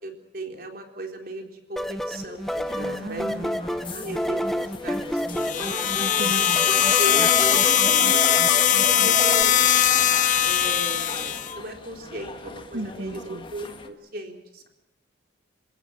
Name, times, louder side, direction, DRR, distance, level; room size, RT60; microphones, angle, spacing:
voice 1, 0.0-3.5 3.9-5.9 7.0-9.7 10.4-14.7, right 1 dB, 50° right, 3 dB, 3.8 m, -37 dB
sound 1, 1.8-9.4, equal, ahead, 0.7 m, -30 dB
sound 2, 2.1-13.9, left 2 dB, 25° left, 1.7 m, -42 dB
voice 2, 2.8-3.6 6.0-6.7 12.7-13.5, right 1 dB, 80° right, 9 dB, 1.9 m, -35 dB
sound 3, 5.4-11.5, left 10 dB, 40° left, 0.8 m, -20 dB
28.0 x 17.0 x 7.4 m, 0.93 s
head